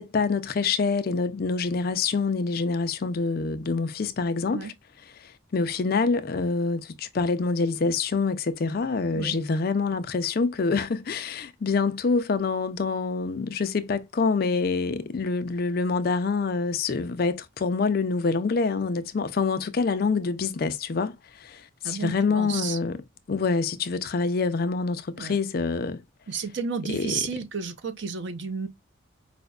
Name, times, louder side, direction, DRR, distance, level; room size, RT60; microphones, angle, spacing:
voice 1, 0.0-4.6 5.2-23.0 23.3-26.0 26.9-27.2, left 4 dB, 50° left, 0.4 m, -26 dB
voice 2, 21.8-22.8 25.2-25.4 26.3-28.7, right 5 dB, 60° right, 0.6 m, -32 dB
4.9 x 2.1 x 2.3 m
head